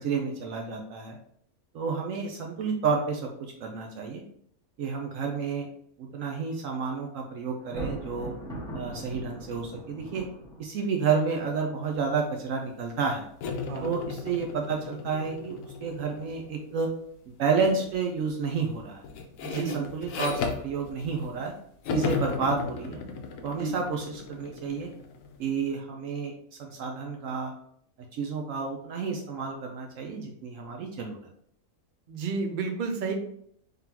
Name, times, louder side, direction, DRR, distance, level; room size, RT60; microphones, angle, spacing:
voice 1, 0.0-1.2 1.7-4.2 4.8-5.7 6.0-8.3 8.7-10.3 10.6-13.3 13.8-16.9 17.3-19.0 19.5-21.5 21.9-23.0 23.4-24.9 25.4-26.3 26.6-27.5 28.1-31.2, right 5 dB, 70° right, 2 dB, 0.9 m, -30 dB
Thunder, 7.6-10.9, right 1 dB, 5° left, 1.0 m, -39 dB
sound 1, 13.4-16.7 17.6-17.9 18.3-21.5 21.8-25.4, left 4 dB, 70° left, 1.0 m, -35 dB
voice 2, 19.4-19.8 23.6-23.8 32.1-33.1, right 4 dB, 50° right, 4 dB, 0.6 m, -31 dB
3.7 x 3.6 x 2.8 m, 0.66 s
omnidirectional pair, 1.5 m